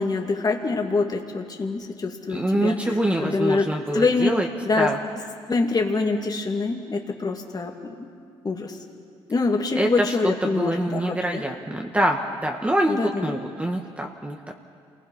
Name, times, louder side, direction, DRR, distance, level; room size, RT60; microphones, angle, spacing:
voice 1, 0.0-2.8 3.2-3.6 3.9-4.3 4.6-4.9 5.5-8.1 8.4-8.8 9.3-11.4 12.9-13.4, left 3 dB, 35° left, 2 dB, 2.4 m, -25 dB
voice 2, 2.3-4.5 4.8-5.0 9.7-14.4, right 1 dB, 10° right, 1 dB, 1.7 m, -25 dB
28.0 x 19.5 x 5.6 m, 2.2 s
supercardioid pair, 70°, 12 cm